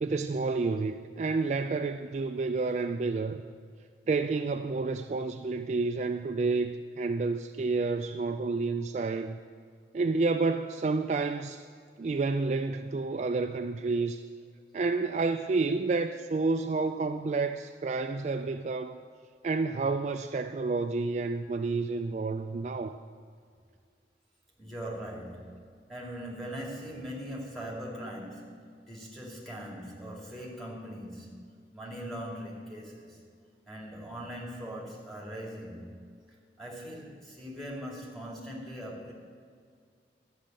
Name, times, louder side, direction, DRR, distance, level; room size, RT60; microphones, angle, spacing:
voice 1, 0.0-3.4 4.1-9.4 9.9-11.6 12.0-14.2 14.7-19.0 19.4-23.0, right 3 dB, 40° right, 7 dB, 0.3 m, -30 dB
voice 2, 24.6-25.6 25.9-33.2 33.7-36.0 36.6-39.1, equal, ahead, -3 dB, 2.4 m, -41 dB
12.0 x 6.3 x 8.8 m, 2.2 s
head